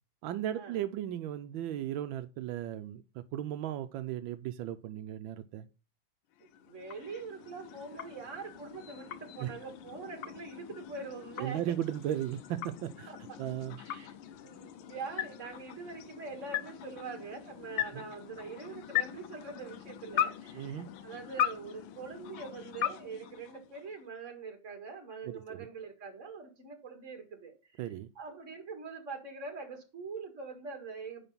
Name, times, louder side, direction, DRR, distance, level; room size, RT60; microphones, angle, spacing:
voice 1, 0.2-5.7 9.4-9.5 11.4-13.1 13.4-13.8 17.9-18.0 20.5-20.9 25.2-25.7 27.8-28.1, right 11 dB, 85° right, 1.4 m, -36 dB
sound 1, 6.3-24.1, left 10 dB, 85° left, 1.4 m, -39 dB
voice 2, 6.4-11.6 13.1-13.2 13.8-27.6 27.8-27.9 28.2-31.3, right 4 dB, 40° right, 2.1 m, -44 dB
10.0 x 3.9 x 5.4 m
omnidirectional pair, 2.1 m